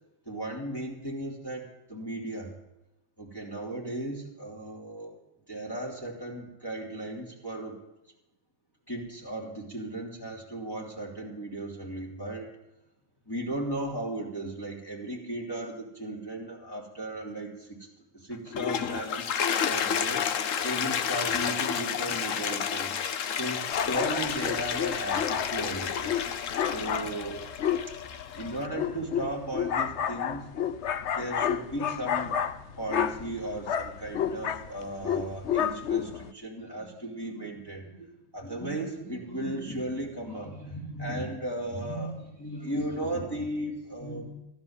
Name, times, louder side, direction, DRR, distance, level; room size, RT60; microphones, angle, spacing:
voice 1, 0.2-2.6 3.2-5.2 5.5-7.8 8.9-12.5 13.2-17.9 18.1-19.3 19.6-22.9 23.3-26.2 26.6-27.5 27.9-28.1 28.3-30.5 31.1-44.4, right 1 dB, 10° left, -3 dB, 3.1 m, -36 dB
Toilet flush, 18.3-28.7, left 8 dB, 60° left, 0.8 m, -31 dB
sound 1, 23.7-36.3, left 8 dB, 85° left, 0.6 m, -31 dB
15.0 x 11.0 x 7.3 m, 0.96 s
omnidirectional pair, 2.2 m